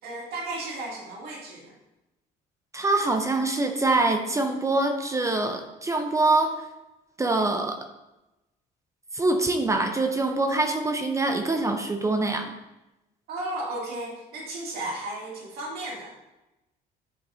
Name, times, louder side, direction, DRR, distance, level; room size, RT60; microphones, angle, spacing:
voice 1, 0.0-1.7 13.3-16.1, right 2 dB, 65° right, -4 dB, 2.3 m, -34 dB
voice 2, 2.7-6.7 7.2-7.8 9.1-12.5, right 2 dB, 20° right, 5 dB, 0.6 m, -24 dB
9.9 x 4.5 x 2.7 m, 0.97 s
cardioid pair, 110°, 17 cm